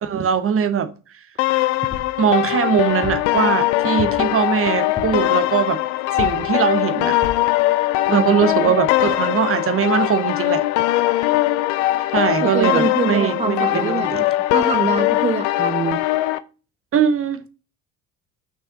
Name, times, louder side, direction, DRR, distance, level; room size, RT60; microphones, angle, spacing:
voice 1, 0.0-0.9 2.2-5.8 6.1-7.2 8.1-10.6 12.1-14.3 16.9-17.4, right 8 dB, 30° right, 1.1 m, -20 dB
sound 1, 1.4-16.4, left 17 dB, 60° left, 0.7 m, -21 dB
Hitting some one or beating or impact sound, 1.9-2.2 3.0-3.3 4.0-4.4 5.0-5.3 6.2-6.5 7.2-7.5 8.1-8.2 8.4-8.5, left 5 dB, 20° left, 1.9 m, -32 dB
voice 2, 8.1-8.9 12.4-14.1 14.5-16.0, right 5 dB, 15° right, 0.5 m, -25 dB
6.0 x 5.7 x 5.9 m
figure-of-eight pair, 55°, 41 cm